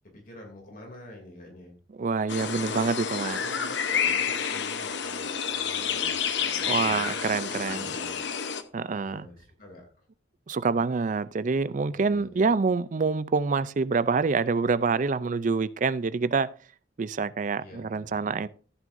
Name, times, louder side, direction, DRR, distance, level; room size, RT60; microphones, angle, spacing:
voice 1, 0.0-1.7 2.4-2.8 3.3-7.1 7.6-8.2 9.0-10.1 11.9-12.5 17.6-18.3, left 1 dB, 50° left, 2.9 m, -48 dB
voice 2, 2.0-3.4 6.7-7.9 8.7-9.3 10.5-16.5 17.0-18.5, right 4 dB, 45° right, 0.4 m, -26 dB
sound 1, 2.3-8.6, left 7 dB, 70° left, 0.9 m, -29 dB
14.5 x 9.2 x 2.6 m
head